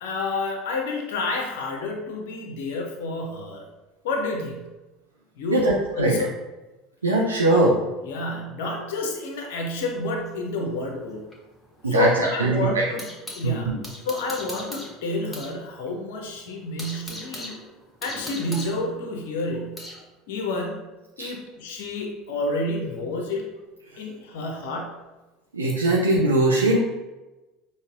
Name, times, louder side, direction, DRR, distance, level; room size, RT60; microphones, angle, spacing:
voice 1, 0.0-3.6 4.0-4.7 5.4-6.3 8.0-11.2 11.9-13.1 13.3-13.7 14.0-17.5 18.0-19.8 20.3-20.9 21.2-23.5 24.0-25.0, left 2 dB, 60° left, 2 dB, 0.5 m, -29 dB
voice 2, 5.5-6.2 7.0-7.7 11.8-12.8 13.4-13.8 21.2-21.3 25.5-26.8, right 2 dB, 80° right, -3 dB, 0.4 m, -21 dB
sound 1, 10.3-13.5 13.8-15.6 15.9-16.0 16.4-20.0, left 1 dB, 10° left, 0.8 m, -40 dB
5.2 x 2.0 x 2.4 m, 1.1 s
figure-of-eight pair, 70°, 0 cm